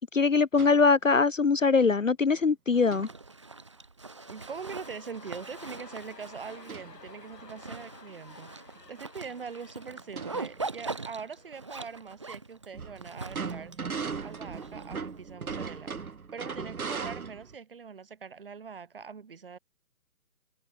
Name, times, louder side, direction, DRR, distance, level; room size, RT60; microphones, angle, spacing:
voice 1, 0.1-3.1, left 4 dB, 50° left, 0.8 m, -22 dB
sound 1, 0.6-0.9 1.8-2.0 2.3-2.4 2.9-3.1 6.7-6.9 7.4-7.5 8.8-8.9 9.2-9.3 9.9-10.8 12.7-17.6, right 5 dB, 60° right, 1.5 m, -38 dB
Zipper (clothing), 2.7-15.2, right 3 dB, 20° right, 1.4 m, -42 dB
sound 2, 4.1-12.2 12.4-12.5, left 4 dB, 75° left, 4.2 m, -53 dB
voice 2, 4.3-19.6, right 6 dB, 35° right, 7.1 m, -43 dB
hypercardioid pair, 175°, 49 cm